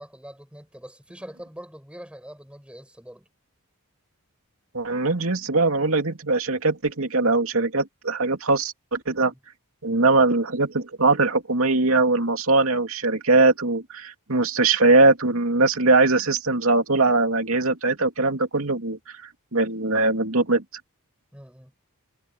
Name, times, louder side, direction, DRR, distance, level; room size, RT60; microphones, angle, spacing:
voice 1, 0.0-3.3 9.2-9.4 21.3-21.7, equal, 5° right, 6.8 m, -43 dB
voice 2, 4.7-9.3 9.8-19.2 19.5-20.6, right 3 dB, 65° right, 2.9 m, -21 dB
head